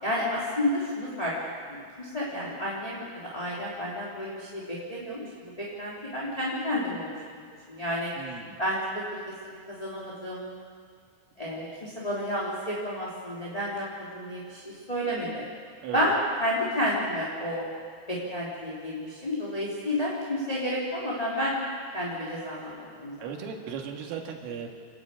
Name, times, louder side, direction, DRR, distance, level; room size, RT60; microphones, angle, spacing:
voice 1, 0.0-1.3 1.7-5.2 5.6-8.1 8.6-8.8 9.4-10.5 11.4-14.6 14.9-15.4 15.9-17.7 18.1-21.6 21.9-23.3, equal, 10° left, -7 dB, 2.3 m, -31 dB
voice 2, 8.2-8.6 15.8-16.1 23.2-24.7, right 7 dB, 90° right, 1 dB, 4.5 m, -37 dB
28.5 x 11.5 x 8.5 m, 2.1 s
omnidirectional pair, 5.6 m